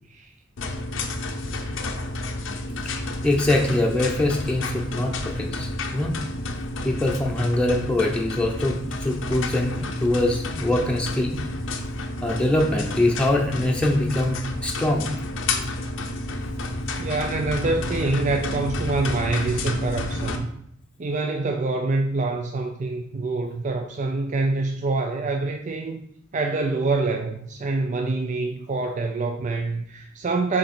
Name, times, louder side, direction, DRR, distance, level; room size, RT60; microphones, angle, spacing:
sound 1, 0.6-20.4, left 2 dB, 85° left, 0.8 m, -30 dB
voice 1, 3.2-6.1 6.8-11.5 12.2-15.1, left 1 dB, 5° left, -1 dB, 0.7 m, -23 dB
voice 2, 17.0-20.5 21.0-26.0 26.3-30.6, right 3 dB, 40° right, 4 dB, 0.4 m, -26 dB
6.4 x 4.1 x 4.3 m, 0.73 s
head